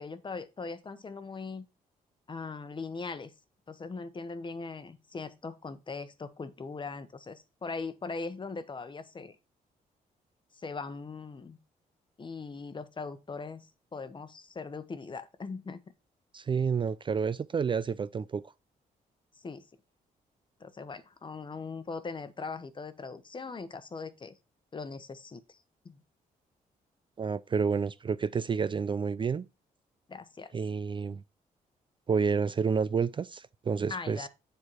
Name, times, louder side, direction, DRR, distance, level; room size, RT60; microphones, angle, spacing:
voice 1, 0.0-1.6 2.3-3.3 3.7-9.4 10.6-11.6 12.2-15.8 19.3-19.7 20.6-24.3 24.7-25.6 25.8-26.0 30.1-30.6 33.9-34.3, left 4 dB, 30° left, 1.0 m, -40 dB
voice 2, 16.3-18.4 27.2-29.5 30.5-31.2 32.1-34.3, right 5 dB, 35° right, 0.4 m, -29 dB
7.4 x 4.6 x 4.6 m
cardioid pair, 85°, 15 cm